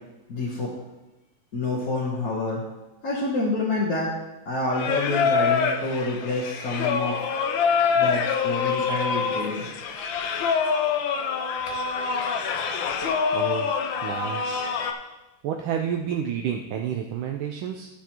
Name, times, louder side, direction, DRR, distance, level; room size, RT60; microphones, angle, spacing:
voice 1, 0.3-0.7 1.5-2.6 3.0-4.1 4.5-7.1 7.9-9.6, left 2 dB, 45° left, -5 dB, 1.4 m, -27 dB
Singing, 4.7-14.9, left 6 dB, 70° left, 1.3 m, -25 dB
voice 2, 13.3-13.7 14.0-14.7 15.4-17.9, right 8 dB, 75° right, 3 dB, 1.4 m, -30 dB
13.0 x 7.1 x 3.0 m, 1.0 s
omnidirectional pair, 2.4 m